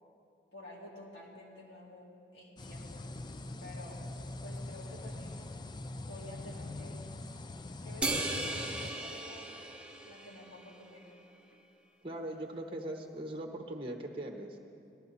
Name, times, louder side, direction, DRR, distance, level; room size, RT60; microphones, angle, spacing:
voice 1, 0.5-3.0 3.6-4.1 4.4-5.5 6.0-7.2 7.8-9.6 10.0-11.1, left 1 dB, 80° left, -4 dB, 2.7 m, -50 dB
sound 1, 2.6-8.9, left 2 dB, 25° left, 0.4 m, -43 dB
sound 2, 8.0-10.7, right 2 dB, 5° right, 0.7 m, -37 dB
voice 2, 12.0-14.6, right 1 dB, 30° right, 3 dB, 1.0 m, -40 dB
18.5 x 12.5 x 4.1 m, 2.5 s
head